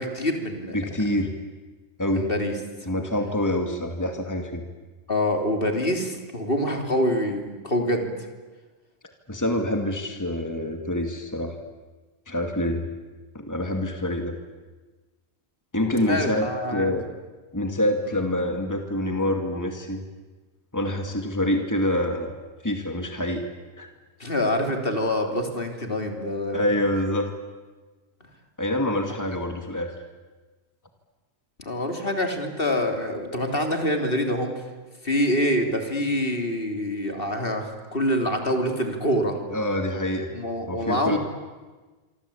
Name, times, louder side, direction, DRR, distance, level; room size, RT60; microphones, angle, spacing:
voice 1, 0.0-0.9 2.1-2.5 5.1-8.1 15.9-16.9 24.2-26.7 31.6-34.5 35.0-39.4 40.3-41.2, left 1 dB, 55° left, 5 dB, 3.5 m, -26 dB
voice 2, 0.7-1.3 2.0-2.3 2.9-4.6 9.3-11.6 12.3-12.8 13.3-14.4 15.7-17.1 17.5-20.0 20.7-22.3 22.6-23.5 23.8-23.9 26.5-27.3 28.6-29.9 39.5-40.3 40.7-41.2, left 1 dB, 15° left, 5 dB, 2.3 m, -26 dB
26.5 x 25.0 x 8.6 m, 1.3 s
omnidirectional pair, 1.1 m